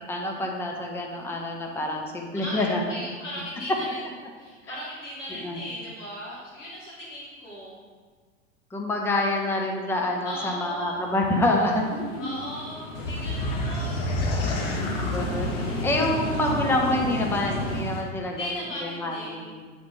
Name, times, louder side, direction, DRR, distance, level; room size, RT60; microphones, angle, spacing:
voice 1, 0.1-2.8 5.4-5.6 8.7-12.3 14.9-15.5 15.8-18.5 18.8-19.6, left 1 dB, 5° left, 0 dB, 0.7 m, -27 dB
voice 2, 2.3-4.1 4.4-7.8 10.2-11.1 12.2-14.1 16.1-16.5 18.3-19.6, left 1 dB, 65° left, -5 dB, 1.9 m, -37 dB
sound 1, 10.8-17.8, left 1 dB, 85° left, 1.3 m, -35 dB
sound 2, 12.9-18.0, left 1 dB, 45° left, 1.1 m, -30 dB
7.5 x 4.2 x 3.7 m, 1.5 s
figure-of-eight pair, 90°, 39 cm